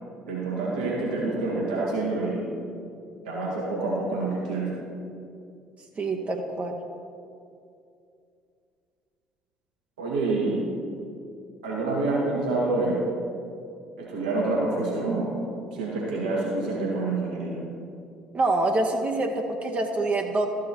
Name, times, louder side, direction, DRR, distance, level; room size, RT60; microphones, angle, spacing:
voice 1, 0.3-2.5 3.2-4.7 10.0-10.6 11.6-13.0 14.0-15.4 15.7-17.6, right 3 dB, 75° right, -5 dB, 2.0 m, -27 dB
voice 2, 6.0-6.8 18.3-20.5, right 2 dB, 35° right, 3 dB, 0.9 m, -26 dB
13.0 x 6.2 x 4.4 m, 2.5 s
figure-of-eight pair, 55°, 4 cm